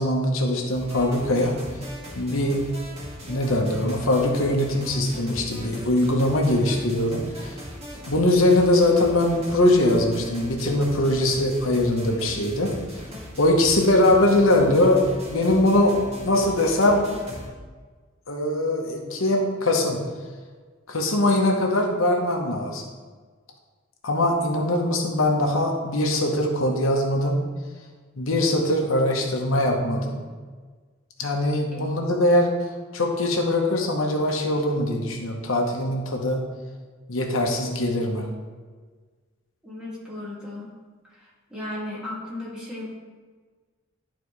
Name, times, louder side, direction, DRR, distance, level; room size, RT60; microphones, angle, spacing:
voice 1, 0.0-1.6 2.1-2.6 3.3-7.5 8.1-12.7 13.4-15.0 15.3-15.9 16.2-17.0 18.3-20.0 20.9-22.8 24.0-27.4 28.2-30.1 31.2-32.5 32.9-36.4 37.1-38.3, left 1 dB, 90° left, 1 dB, 1.1 m, -22 dB
sound 1, 0.7-17.5, equal, 30° right, 1.9 m, -39 dB
voice 2, 39.6-40.7 41.0-42.9, left 1 dB, 5° right, -8 dB, 2.0 m, -36 dB
11.5 x 4.2 x 3.2 m, 1.5 s
head